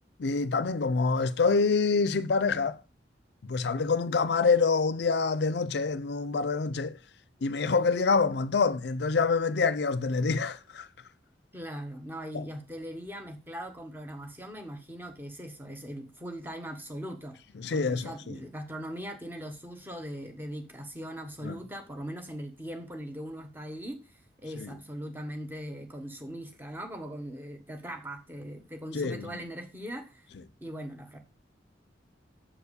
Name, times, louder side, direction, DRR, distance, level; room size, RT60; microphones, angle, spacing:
voice 1, 0.2-2.8 3.4-7.0 7.4-10.9 12.3-12.5 17.6-18.4 21.4-21.6 24.6-24.7 28.9-29.4, left 4 dB, 65° left, 0.5 m, -26 dB
voice 2, 11.5-17.4 17.7-30.3 30.6-31.2, equal, 10° right, 1.4 m, -40 dB
7.3 x 4.7 x 6.8 m
head